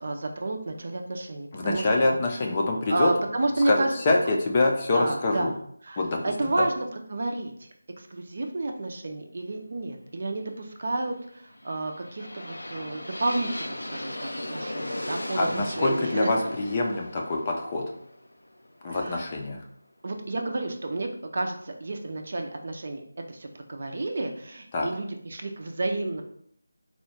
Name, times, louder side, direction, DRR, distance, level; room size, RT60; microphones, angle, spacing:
voice 1, 0.0-2.1 2.9-4.1 4.9-5.6 5.8-7.7 8.0-16.3 18.9-19.3 20.0-23.0 23.3-26.2, right 2 dB, 50° right, 4 dB, 0.6 m, -31 dB
voice 2, 1.5-3.1 3.7-5.5 6.0-6.2 6.6-6.7 15.3-17.8 18.8-19.6 24.7-24.9, left 2 dB, 25° left, 0 dB, 0.6 m, -25 dB
sound 1, 11.5-19.4, left 1 dB, 80° left, 0.6 m, -37 dB
4.3 x 2.3 x 4.4 m, 0.67 s
figure-of-eight pair, 165°, 0 cm